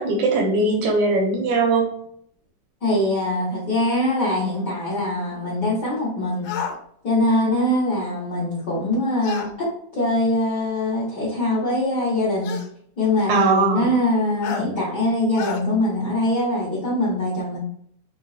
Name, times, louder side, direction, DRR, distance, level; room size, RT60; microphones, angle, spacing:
voice 1, 0.0-1.9 13.3-13.9, right 3 dB, 75° right, 0 dB, 1.4 m, -20 dB
voice 2, 2.8-6.5 7.0-9.7 9.9-12.5 13.0-17.6, left 1 dB, 60° left, -9 dB, 1.0 m, -23 dB
sound 1, 6.4-6.8 9.2-9.5 10.8-10.9 12.4-12.7 14.4-14.7 15.4-15.6, left 6 dB, 90° left, 2.2 m, -30 dB
5.2 x 2.3 x 2.4 m, 0.68 s
omnidirectional pair, 3.7 m